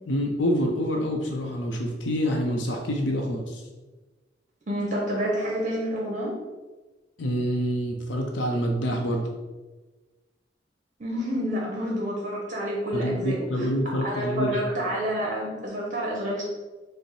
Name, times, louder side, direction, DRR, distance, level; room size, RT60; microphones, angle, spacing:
voice 1, 0.1-3.6 7.2-9.3 12.9-14.6, equal, 80° left, 1 dB, 0.6 m, -27 dB
voice 2, 4.7-6.3 11.0-13.7 14.0-16.4, equal, 40° right, -3 dB, 0.8 m, -28 dB
5.1 x 2.1 x 4.7 m, 1.2 s
head